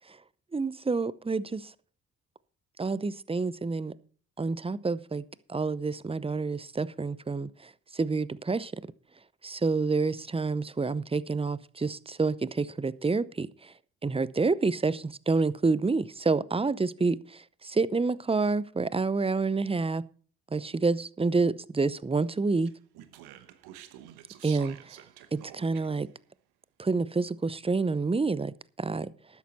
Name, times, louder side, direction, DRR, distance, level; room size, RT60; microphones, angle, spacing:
voice 1, 0.5-1.7 2.8-3.9 4.4-5.2 5.5-7.5 7.9-8.8 9.4-13.5 14.0-20.0 20.5-22.7 24.4-24.8 25.3-26.1 26.8-29.1, right 4 dB, 15° right, 0.6 m, -28 dB
Speech, 22.6-26.1, right 12 dB, 80° right, 1.1 m, -49 dB
12.5 x 9.3 x 4.2 m
hypercardioid pair, 50°, 38 cm